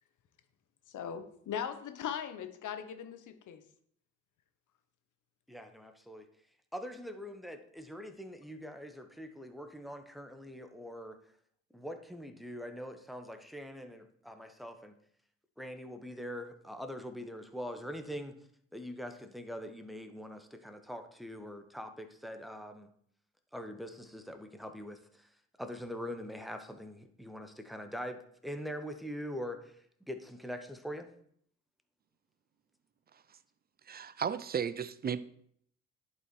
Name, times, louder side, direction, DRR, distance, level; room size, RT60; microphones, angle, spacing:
voice 1, 0.9-3.6, left 8 dB, 50° left, 1.1 m, -39 dB
voice 2, 5.5-6.3 6.7-11.2 11.7-15.0 15.6-18.4 18.7-22.9 23.5-25.3 25.6-29.7 30.1-31.1, equal, ahead, 1.1 m, -43 dB
voice 3, 33.9-35.2, right 7 dB, 25° right, 0.5 m, -34 dB
11.0 x 4.2 x 4.6 m
hypercardioid pair, 55°, 38 cm